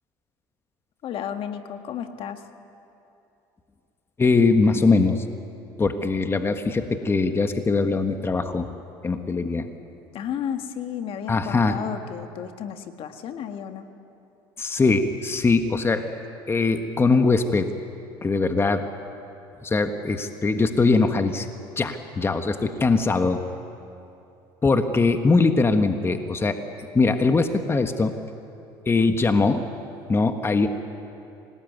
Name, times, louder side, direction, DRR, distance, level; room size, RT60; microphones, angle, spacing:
voice 1, 1.0-2.5 10.1-13.9, left 9 dB, 55° left, 7 dB, 1.8 m, -33 dB
voice 2, 4.2-5.2 5.8-8.7 9.0-9.7 11.3-11.8 14.6-16.1 16.5-17.7 18.2-18.8 19.6-21.5 21.8-23.4 24.6-26.6 26.9-28.1 28.9-29.7 30.1-30.7, left 3 dB, 20° left, 7 dB, 1.4 m, -21 dB
26.0 x 18.5 x 9.4 m, 2.8 s
supercardioid pair, 85°, 11 cm